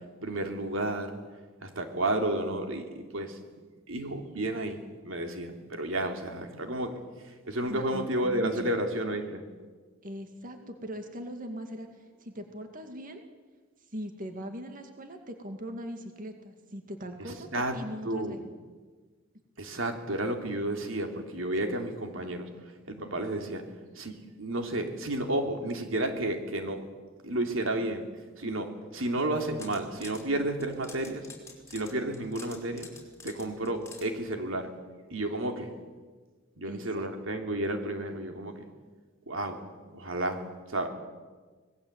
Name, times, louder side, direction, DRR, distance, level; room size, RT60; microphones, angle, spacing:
voice 1, 0.2-1.1 1.6-9.4 17.3-17.8 18.0-18.4 19.6-22.5 22.9-23.6 23.9-26.8 27.2-28.1 28.4-31.3 31.7-32.9 33.2-34.7 35.1-35.7 36.6-38.6 39.3-39.6 39.9-40.4 40.7-40.9, right 1 dB, 80° right, 4 dB, 3.0 m, -32 dB
voice 2, 7.7-8.7 10.0-13.2 13.9-18.4 36.6-37.4, equal, 45° right, 5 dB, 2.2 m, -40 dB
sound 1, 29.3-30.2 30.6-34.1, left 4 dB, 15° left, 4.7 m, -48 dB
25.5 x 19.5 x 8.1 m, 1.4 s
head